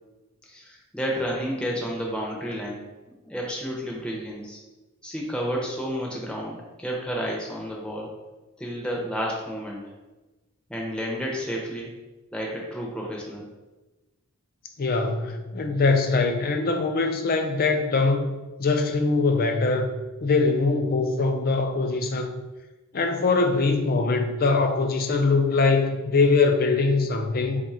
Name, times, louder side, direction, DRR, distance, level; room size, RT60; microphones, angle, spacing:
voice 1, 0.5-2.9 3.2-4.6 5.0-8.2 8.6-9.8 10.7-11.9 12.3-13.5, equal, 5° left, -3 dB, 0.6 m, -31 dB
voice 2, 14.8-19.9 20.2-22.4 22.9-27.6, left 3 dB, 45° left, 5 dB, 0.4 m, -22 dB
3.6 x 2.4 x 4.3 m, 1.1 s
head